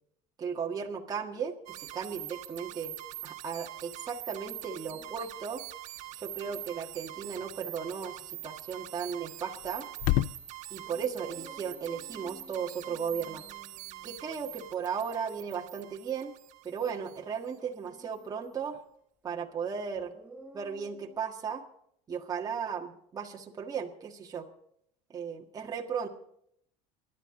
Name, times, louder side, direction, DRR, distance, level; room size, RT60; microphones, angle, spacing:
voice 1, 0.4-3.0 3.2-5.6 6.1-9.9 10.7-13.4 14.0-16.4 16.6-18.8 19.2-20.1 20.5-21.6 22.1-24.5 25.1-26.1, right 6 dB, 25° right, 0 dB, 1.6 m, -36 dB
sound 1, 1.7-17.5, right 14 dB, 55° right, 1.4 m, -44 dB
sound 2, 4.8-5.2 6.1-6.6 9.6-9.7 10.8-14.8 17.5-18.8 19.9-21.2, right 3 dB, 10° right, 1.2 m, -52 dB
sound 3, 6.0-14.9, left 16 dB, 60° left, 0.5 m, -39 dB
24.0 x 11.5 x 3.8 m, 0.70 s
cardioid pair, 130°, 15 cm